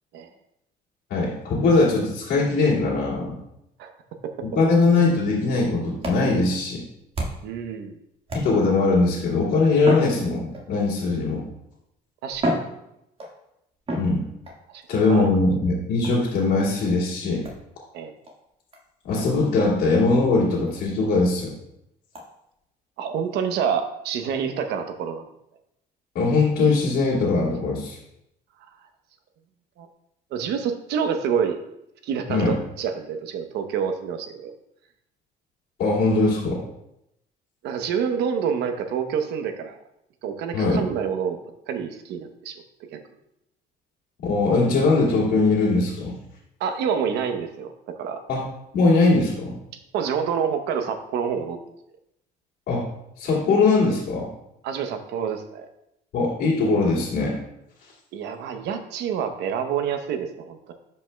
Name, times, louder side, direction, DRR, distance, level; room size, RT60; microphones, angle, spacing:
voice 1, 1.1-3.4 4.4-6.8 8.3-11.4 13.9-14.2 14.9-17.5 19.0-21.5 26.1-28.0 32.3-32.5 35.8-36.6 40.5-40.8 44.2-46.1 48.3-48.4 48.7-49.6 52.7-52.8 53.2-54.3 56.1-57.4, left 3 dB, 75° left, -8 dB, 2.4 m, -21 dB
sound 1, 6.0-7.6 8.3-8.9 9.8-10.9 11.7-11.8 12.3-13.4 13.9-14.6 16.0-16.3 17.4-17.6 18.2-18.3 18.7-18.8 19.1-19.3 19.6-19.7 20.1-20.2 20.7-20.8 21.2-21.3 22.1-22.3, right 1 dB, 35° right, 1.8 m, -31 dB
voice 2, 7.4-8.0 12.2-12.6 14.7-15.3 17.9-18.1 23.0-25.2 29.8-29.9 30.3-31.6 32.0-34.5 37.6-39.8 40.2-41.4 41.7-42.6 42.9-43.0 46.6-48.2 49.9-51.6 54.6-55.7 58.1-60.7, right 7 dB, 80° right, 7 dB, 0.9 m, -27 dB
12.0 x 5.3 x 2.3 m, 0.81 s
cardioid pair, 110°, 17 cm